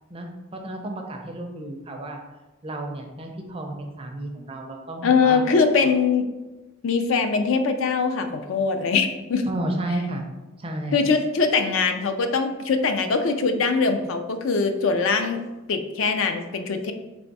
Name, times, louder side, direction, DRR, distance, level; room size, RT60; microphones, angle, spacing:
voice 1, 0.1-2.2 2.6-5.4 9.5-10.2 10.6-11.0, right 1 dB, 25° right, 3 dB, 0.4 m, -32 dB
voice 2, 5.0-6.2 6.8-9.4 10.9-15.4 15.7-16.9, left 4 dB, 65° left, 7 dB, 0.4 m, -22 dB
3.4 x 3.3 x 4.0 m, 1.1 s
head